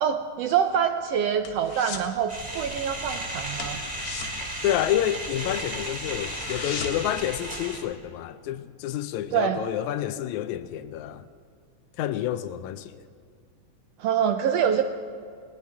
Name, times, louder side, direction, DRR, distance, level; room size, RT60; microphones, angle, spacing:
voice 1, 0.0-3.8 9.3-9.6 14.0-14.8, right 8 dB, 85° right, 1.4 m, -25 dB
sound 1, 0.6-2.2 2.4-2.7 3.0-3.1 3.5-5.4 5.7-5.8 6.1-7.2 7.5-7.6, left 6 dB, 60° left, 2.4 m, -37 dB
sound 2, 2.3-7.8, right 1 dB, 20° right, 2.0 m, -34 dB
voice 2, 4.6-11.3 12.0-13.0, left 12 dB, 80° left, 1.9 m, -29 dB
20.0 x 19.0 x 3.5 m
omnidirectional pair, 3.5 m